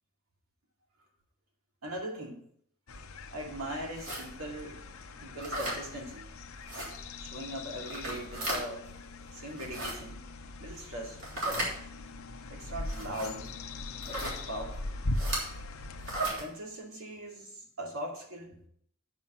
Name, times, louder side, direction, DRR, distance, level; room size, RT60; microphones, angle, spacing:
voice 1, 1.8-2.5 3.3-6.3 7.2-8.9 9.3-10.2 10.6-11.2 12.5-13.5 14.0-15.0 16.4-18.6, equal, 75° right, 0 dB, 2.3 m, -40 dB
sound 1, 2.9-16.3, left 2 dB, 75° left, 0.8 m, -41 dB
sound 2, 3.9-4.2 5.4-5.8 6.7-6.9 7.8-8.6 9.5-9.9 11.2-11.7 12.9-13.3 14.0-14.4 15.1-15.4 16.0-16.4, right 1 dB, 60° right, 3.2 m, -34 dB
9.0 x 6.4 x 5.7 m, 0.67 s
head